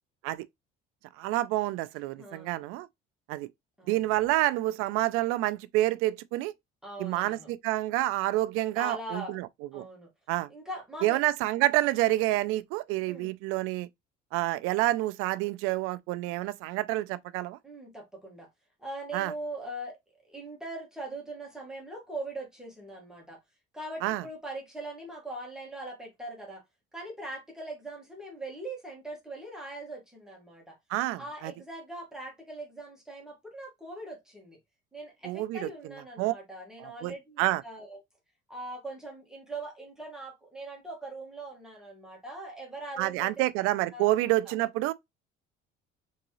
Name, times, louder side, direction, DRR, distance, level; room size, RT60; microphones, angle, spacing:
voice 1, 1.2-2.9 3.3-3.5 3.9-6.5 7.0-9.5 9.7-9.8 10.3-10.5 11.0-13.9 14.3-17.6 19.1-19.3 24.0-24.2 30.9-31.5 35.2-35.9 36.2-36.3 36.8-37.6 43.0-44.9, right 17 dB, 90° right, 0.5 m, -28 dB
voice 2, 2.2-2.6 3.8-4.1 6.8-7.5 8.8-9.4 9.7-10.1 10.5-11.2 13.1-13.3 17.6-18.5 18.8-20.0 20.2-23.4 23.7-26.6 26.9-30.8 31.2-34.6 34.9-38.0 38.5-43.4 43.9-44.1 44.5-44.6, right 2 dB, 5° right, 1.7 m, -41 dB
3.8 x 3.7 x 3.0 m
cardioid pair, 150°, 21 cm